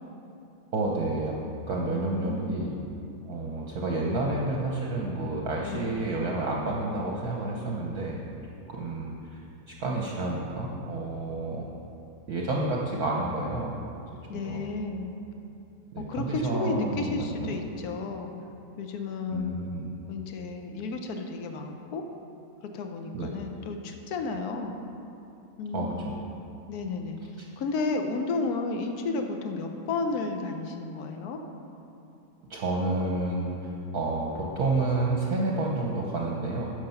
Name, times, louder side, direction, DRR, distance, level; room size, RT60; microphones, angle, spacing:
voice 1, 0.7-1.4 1.7-2.8 3.3-8.3 8.7-9.4 9.7-11.7 12.3-13.8 14.3-14.7 15.9-17.5 19.3-19.9 23.1-23.3 25.7-26.2 32.5-36.7, right 2 dB, 60° right, -2 dB, 1.2 m, -30 dB
voice 2, 1.9-2.8 5.6-6.0 14.3-15.1 16.0-18.3 18.8-19.6 20.1-22.0 22.7-24.8 25.6-26.1 26.7-27.2 27.6-31.4, left 3 dB, 60° left, 4 dB, 1.1 m, -32 dB
9.6 x 6.8 x 5.7 m, 2.7 s
omnidirectional pair, 2.2 m